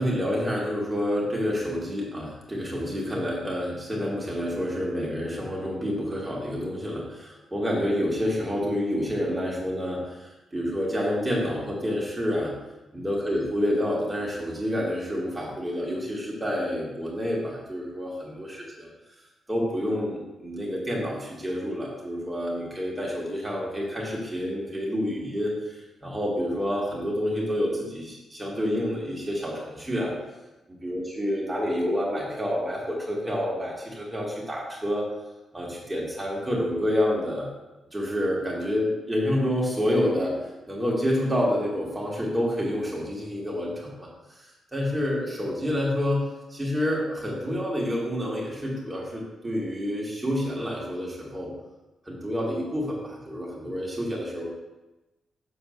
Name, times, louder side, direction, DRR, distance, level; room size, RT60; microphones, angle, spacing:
voice 1, 0.0-12.5 12.9-18.9 19.5-30.1 30.7-35.1 35.5-37.5 37.9-40.4 40.7-44.1 44.7-51.5 52.1-54.5, equal, 10° right, -4 dB, 2.4 m, -28 dB
7.3 x 4.4 x 6.6 m, 1.0 s
cardioid pair, 130°, 0 cm